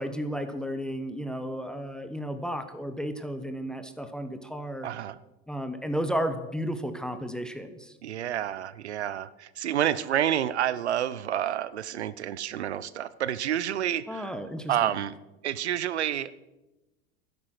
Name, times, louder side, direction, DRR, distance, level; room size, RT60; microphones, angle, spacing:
voice 1, 0.0-4.9 5.5-7.9 14.1-14.9, equal, ahead, 8 dB, 1.1 m, -33 dB
voice 2, 4.8-5.2 8.0-14.3 14.7-15.1 15.4-16.3, right 11 dB, 90° right, 17 dB, 0.7 m, -29 dB
12.0 x 10.5 x 6.0 m, 1.0 s
hypercardioid pair, 90°, 32 cm